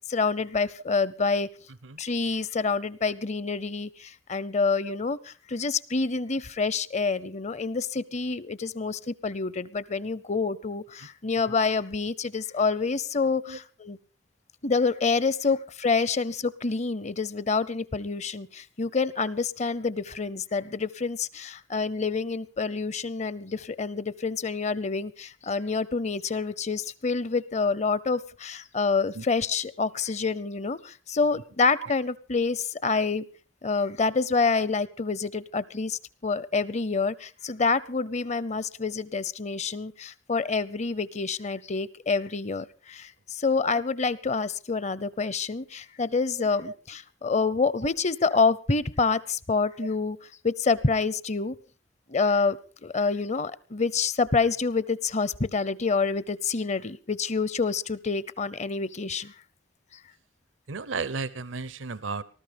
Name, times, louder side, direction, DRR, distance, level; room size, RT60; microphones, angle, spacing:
voice 1, 0.1-1.5 2.0-14.0 14.6-33.3 33.6-50.2 50.4-51.6 52.1-59.3, left 4 dB, 35° left, 19 dB, 0.7 m, -27 dB
voice 2, 1.7-2.0 4.8-5.0 11.0-11.1 13.5-13.6 15.5-15.6 29.2-29.3 31.3-31.4 31.8-31.9 34.5-34.7 46.4-46.7 60.7-62.2, right 4 dB, 80° right, 17 dB, 0.8 m, -35 dB
20.0 x 13.0 x 5.2 m, 0.38 s
head